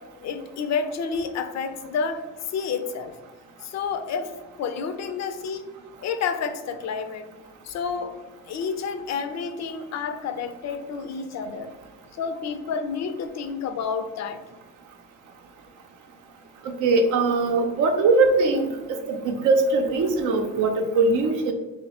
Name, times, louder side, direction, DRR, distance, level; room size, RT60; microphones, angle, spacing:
voice 1, 0.2-2.2 2.5-3.1 3.6-5.7 6.0-7.3 7.6-8.1 8.5-11.7 12.2-14.4, left 5 dB, 60° left, 9 dB, 0.5 m, -30 dB
voice 2, 16.8-18.7 19.1-21.5, right 3 dB, 80° right, 5 dB, 0.6 m, -21 dB
3.1 x 2.1 x 4.1 m, 1.2 s
cardioid pair, 90°, 30 cm